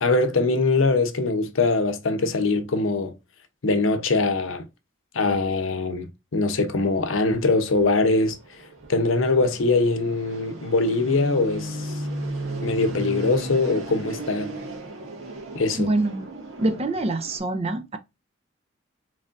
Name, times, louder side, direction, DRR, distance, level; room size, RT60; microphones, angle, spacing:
voice 1, 0.0-3.1 3.6-4.6 5.1-8.4 8.9-11.9 12.6-14.5 15.5-15.9, left 3 dB, 75° left, 0.7 m, -22 dB
Fixed-wing aircraft airplane, 7.2-17.4, right 1 dB, 90° right, 1.2 m, -35 dB
voice 2, 15.8-16.3 16.6-18.0, right 2 dB, 30° right, 0.4 m, -25 dB
3.8 x 3.2 x 2.5 m
head